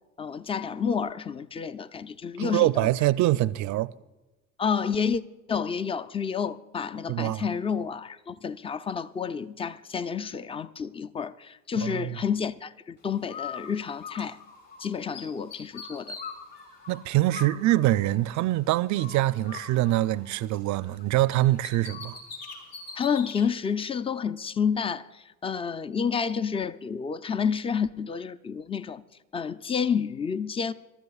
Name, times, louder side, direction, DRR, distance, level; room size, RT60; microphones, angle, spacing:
voice 1, 0.2-2.9 4.6-5.2 5.5-14.4 14.8-16.2 23.0-29.0 29.3-30.7, left 6 dB, 15° left, 0.4 m, -29 dB
voice 2, 2.4-3.9 7.1-7.5 11.8-12.2 16.9-22.2, right 16 dB, 45° right, 0.5 m, -24 dB
Bird, 13.3-14.8 15.1-18.6 18.9-21.0 21.3-23.4, left 5 dB, 55° left, 5.3 m, -42 dB
27.0 x 13.0 x 2.4 m
hypercardioid pair, 70°, 40 cm